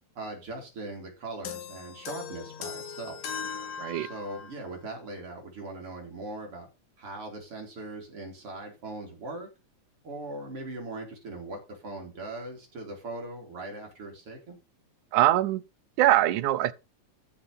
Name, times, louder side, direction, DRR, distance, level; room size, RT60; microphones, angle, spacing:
voice 1, 0.2-3.2 4.0-6.7 7.0-9.5 10.0-14.6, right 2 dB, 45° right, 4.1 m, -40 dB
sound 1, 1.5-4.7, left 6 dB, 90° left, 2.9 m, -39 dB
voice 2, 3.8-4.1 15.1-15.6 16.0-16.7, right 14 dB, 80° right, 2.3 m, -22 dB
13.5 x 5.7 x 5.4 m
omnidirectional pair, 3.5 m